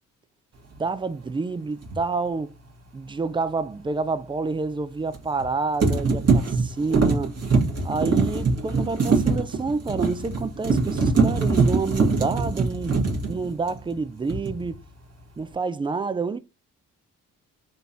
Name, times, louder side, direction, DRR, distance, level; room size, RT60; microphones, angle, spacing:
voice 1, 0.8-2.5 2.9-7.4 7.8-13.0 13.3-14.8 15.4-16.4, right 4 dB, 15° right, 0.3 m, -28 dB
sound 1, 1.8-2.0 5.1-5.5 5.8-14.0 14.3-14.7, right 4 dB, 35° right, 1.3 m, -23 dB
3.7 x 2.4 x 2.6 m
hypercardioid pair, 40°, 41 cm